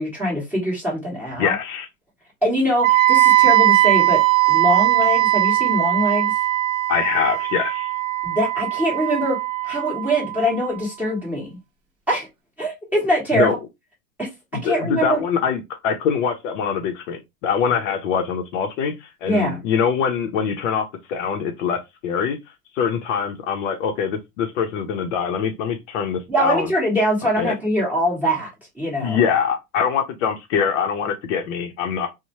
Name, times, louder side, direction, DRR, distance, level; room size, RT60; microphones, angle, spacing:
voice 1, 0.0-1.5 2.4-6.3 8.2-9.4 9.6-11.6 12.1-12.3 12.6-13.6 14.2-14.3 14.6-15.2 19.2-19.6 26.3-28.5 28.8-29.2, equal, 5° right, 1.2 m, -23 dB
voice 2, 1.4-1.9 6.9-7.9 13.3-13.5 14.5-22.4 22.7-26.7 27.4-27.5 29.0-32.1, left 7 dB, 55° left, 0.6 m, -23 dB
Wind instrument woodwind instrument, 2.8-10.8, right 16 dB, 60° right, 0.5 m, -19 dB
2.7 x 2.1 x 2.9 m
supercardioid pair, 150°, 45 cm